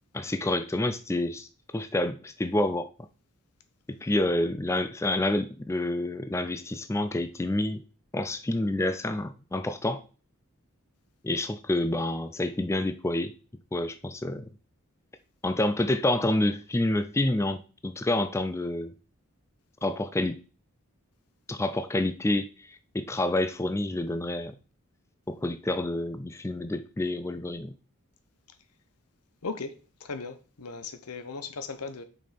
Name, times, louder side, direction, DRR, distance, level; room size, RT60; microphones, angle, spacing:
voice 1, 0.1-1.5 1.7-2.9 3.9-7.8 8.1-10.0 11.2-13.3 13.7-14.5 15.4-18.9 19.8-20.4 21.5-24.6 25.3-27.7, left 1 dB, 10° left, 0.3 m, -28 dB
voice 2, 29.4-32.0, left 4 dB, 90° left, 0.9 m, -37 dB
6.5 x 5.2 x 4.2 m
head